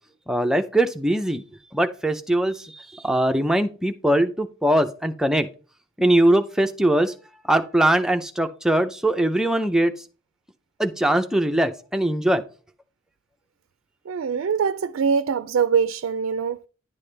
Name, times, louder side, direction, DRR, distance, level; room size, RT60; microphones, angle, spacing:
voice 1, 0.3-1.4 1.7-5.5 6.0-7.1 7.5-9.9 10.8-12.4, right 1 dB, 5° right, 0.5 m, -21 dB
voice 2, 14.1-16.6, right 6 dB, 80° right, 0.4 m, -23 dB
10.5 x 6.9 x 3.3 m
head